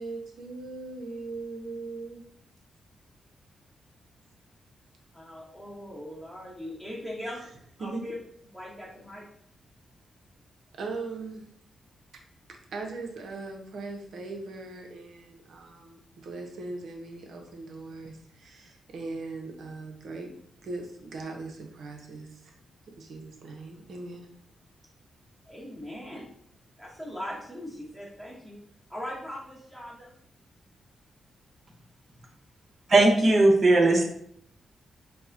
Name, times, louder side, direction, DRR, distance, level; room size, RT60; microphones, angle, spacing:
voice 1, 0.0-2.2 7.8-8.0 10.8-11.5 12.7-20.3 20.6-22.4 23.0-24.3, right 3 dB, 70° right, 2 dB, 0.7 m, -39 dB
voice 2, 5.1-7.4 7.8-8.1 8.5-9.3 25.5-26.3 26.8-28.6 28.9-30.1, equal, 10° right, -6 dB, 1.0 m, -40 dB
voice 3, 32.9-34.0, right 2 dB, 50° right, 1 dB, 0.9 m, -18 dB
4.6 x 2.1 x 2.6 m, 0.67 s
supercardioid pair, 50°, 0 cm